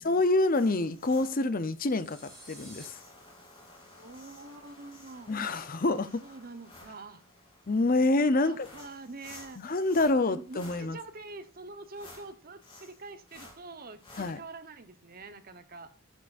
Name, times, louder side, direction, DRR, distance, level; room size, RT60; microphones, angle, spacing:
voice 1, 0.0-3.0 5.3-6.2 7.7-8.7 9.6-11.0 14.2-14.4, left 2 dB, 45° left, 12 dB, 0.7 m, -27 dB
sound 1, 0.5-14.4, left 2 dB, 25° left, 3.5 m, -54 dB
sound 2, 1.9-2.9, right 1 dB, ahead, 4.4 m, -50 dB
voice 2, 4.0-5.4 6.2-7.2 8.4-9.6 10.2-15.9, right 3 dB, 45° right, 9 dB, 1.0 m, -45 dB
11.0 x 9.5 x 2.6 m, 0.33 s
head